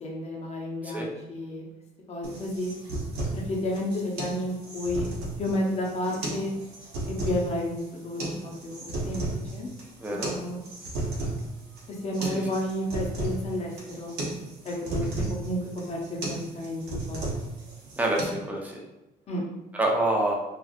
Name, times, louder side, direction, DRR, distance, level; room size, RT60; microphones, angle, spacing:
voice 1, 0.0-1.6 2.1-2.7 3.3-5.1 5.4-6.5 7.2-9.2 9.5-9.7 10.2-10.6 12.0-14.1 14.6-15.1 15.4-15.6 15.9-17.2 19.3-19.4, left 1 dB, 40° left, -2 dB, 0.7 m, -31 dB
sound 1, 2.2-18.2, right 2 dB, 85° right, 1.0 m, -34 dB
voice 2, 10.0-10.3 12.2-12.5 15.2-15.3 18.0-18.8 19.8-20.3, right 1 dB, 10° right, -2 dB, 0.6 m, -27 dB
3.0 x 2.4 x 2.5 m, 0.97 s
cardioid pair, 110°, 17 cm